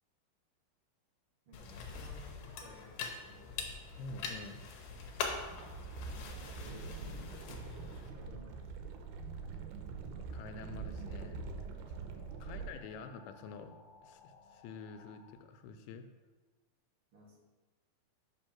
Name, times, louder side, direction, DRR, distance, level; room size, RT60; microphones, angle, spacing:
sound 1, 1.5-8.1, left 5 dB, 70° left, 2.2 m, -43 dB
voice 1, 1.5-3.6 5.9-7.5 7.8-9.3 12.4-13.0 17.1-17.4, left 1 dB, 50° right, -4 dB, 1.8 m, -58 dB
voice 2, 4.0-4.6 10.3-11.4 12.4-13.8 14.0-16.1, left 4 dB, 90° left, 8 dB, 2.6 m, -47 dB
sound 2, 5.0-12.7, right 5 dB, 90° right, 2.6 m, -45 dB
sound 3, 8.2-15.4, left 3 dB, 55° left, 2.2 m, -62 dB
6.2 x 5.1 x 5.9 m, 1.3 s
omnidirectional pair, 4.4 m